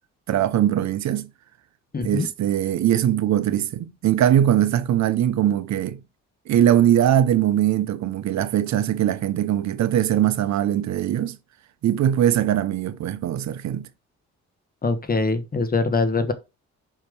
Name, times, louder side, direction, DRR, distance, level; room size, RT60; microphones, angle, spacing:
voice 1, 0.3-1.3 2.0-6.0 6.5-11.4 11.8-13.9, right 11 dB, 65° right, 0.8 m, -21 dB
voice 2, 1.9-2.3 14.8-16.3, left 3 dB, 30° left, 1.3 m, -23 dB
5.6 x 5.1 x 5.3 m
cardioid pair, 90°, 30 cm